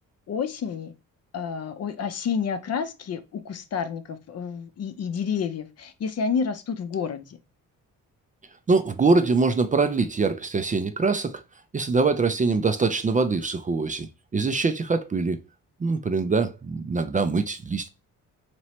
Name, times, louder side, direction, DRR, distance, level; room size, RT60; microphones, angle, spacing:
voice 1, 0.3-0.9 1.3-7.4, left 6 dB, 50° left, 0.6 m, -29 dB
voice 2, 8.7-11.4 11.7-14.1 14.3-15.4 15.8-17.9, right 4 dB, 25° right, 0.4 m, -23 dB
3.0 x 3.0 x 4.2 m
cardioid pair, 110°, 32 cm